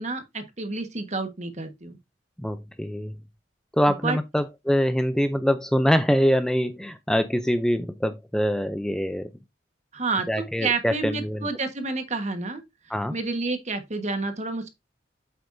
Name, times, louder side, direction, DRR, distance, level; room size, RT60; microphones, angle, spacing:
voice 1, 0.0-2.0 3.9-4.2 9.9-10.3 10.6-12.6 13.1-14.7, right 3 dB, 40° right, 1.4 m, -29 dB
voice 2, 2.4-3.1 3.8-9.3 10.3-11.5 12.9-13.2, equal, 5° left, 0.5 m, -24 dB
8.0 x 8.0 x 2.7 m
head